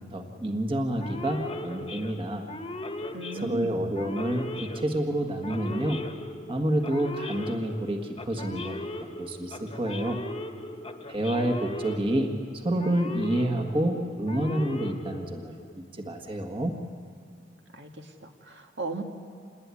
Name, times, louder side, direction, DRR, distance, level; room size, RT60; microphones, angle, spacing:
voice 1, 0.0-2.4 3.3-6.0 6.5-8.8 9.2-10.2 11.1-16.8, right 1 dB, 30° right, 4 dB, 1.7 m, -29 dB
Male speech man speaking / Siren, 1.0-15.7, left 1 dB, 30° left, 1.3 m, -38 dB
voice 2, 3.1-3.8 17.7-19.0, right 2 dB, 75° right, 3 dB, 2.0 m, -36 dB
27.5 x 20.5 x 9.8 m, 2.4 s
head